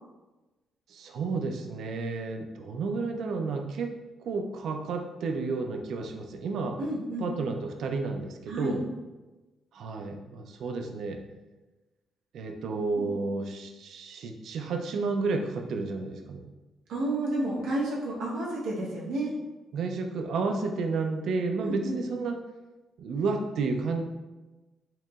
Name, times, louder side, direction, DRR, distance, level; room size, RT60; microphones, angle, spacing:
voice 1, 0.9-3.9 4.3-6.8 7.2-8.8 9.7-11.2 12.3-16.5 19.7-22.4 23.0-24.0, right 4 dB, 60° right, 4 dB, 0.4 m, -31 dB
voice 2, 6.8-7.3 8.5-8.8 12.9-13.1 16.9-19.3 21.6-22.0, right 1 dB, 90° right, -5 dB, 0.9 m, -31 dB
4.5 x 2.9 x 2.3 m, 1.1 s
cardioid pair, 175°, 0 cm